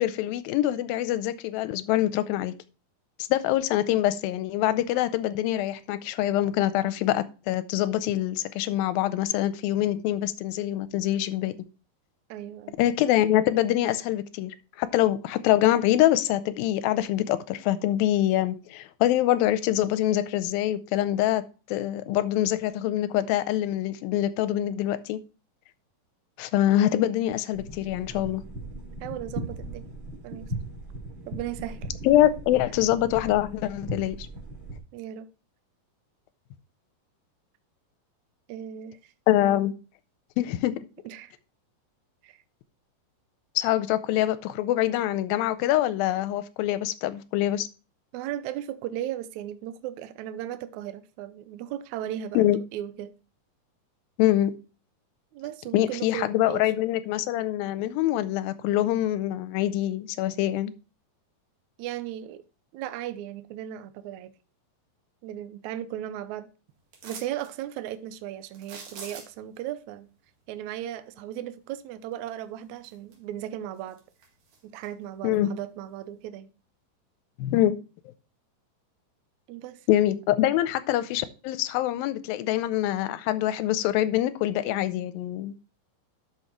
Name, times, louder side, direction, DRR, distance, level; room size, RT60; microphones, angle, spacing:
voice 1, 0.0-2.5 3.3-11.5 12.8-21.4 21.7-25.2 26.4-28.4 32.0-34.2 39.3-39.7 40.4-40.7 43.6-47.7 52.4-52.6 54.2-54.5 55.7-60.7 75.2-75.5 77.4-77.8 79.9-85.5, left 13 dB, 90° left, 2.4 m, -25 dB
voice 2, 12.3-12.8 29.0-29.9 30.2-30.5 31.3-31.9 34.9-35.3 38.5-39.1 41.0-41.3 42.2-42.4 48.1-53.2 55.3-56.9 61.8-62.4 62.7-64.3 65.2-66.5 67.0-70.1 70.5-74.0 74.6-76.5 79.5-79.9, right 11 dB, 80° right, 1.7 m, -36 dB
sound 1, 27.5-34.8, right 1 dB, 40° right, 3.6 m, -38 dB
sound 2, 66.9-67.5 68.5-69.6 72.1-72.2 72.7-73.4 73.8-74.9 75.3-75.4, right 5 dB, 60° right, 3.0 m, -45 dB
12.0 x 5.6 x 3.1 m
omnidirectional pair, 4.1 m